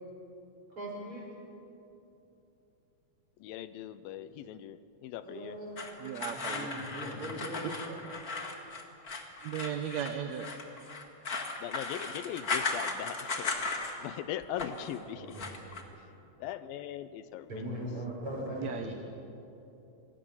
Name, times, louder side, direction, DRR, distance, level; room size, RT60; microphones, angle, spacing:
voice 1, 0.7-1.3 5.2-5.9 6.2-8.0 15.1-15.6 17.5-18.9, equal, 35° right, -3 dB, 7.0 m, -40 dB
voice 2, 3.4-5.6 11.6-13.5 14.0-15.4 16.4-17.9, left 11 dB, 80° left, 13 dB, 2.4 m, -40 dB
sound 1, 5.8-14.2 14.4-14.9 15.3-15.8, left 3 dB, 35° left, 1.5 m, -36 dB
voice 3, 6.0-6.7 9.4-10.5 18.6-18.9, right 9 dB, 70° right, 7 dB, 1.9 m, -36 dB
26.5 x 20.5 x 7.2 m, 2.9 s
omnidirectional pair, 4.2 m